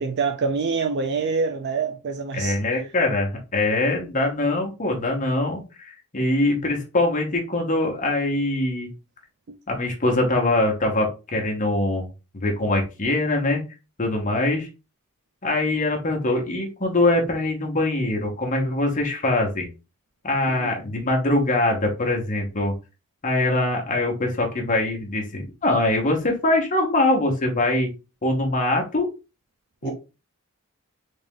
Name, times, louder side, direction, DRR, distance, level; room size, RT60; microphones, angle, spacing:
voice 1, 0.0-2.6 20.5-20.7 29.8-29.9, right 4 dB, 50° right, 0.4 m, -25 dB
voice 2, 2.3-8.9 9.7-12.1 12.3-13.6 14.0-14.7 15.4-19.7 20.2-22.7 23.2-27.9 28.2-29.1 29.8-29.9, left 2 dB, 35° left, 1.0 m, -23 dB
3.5 x 2.5 x 3.5 m
head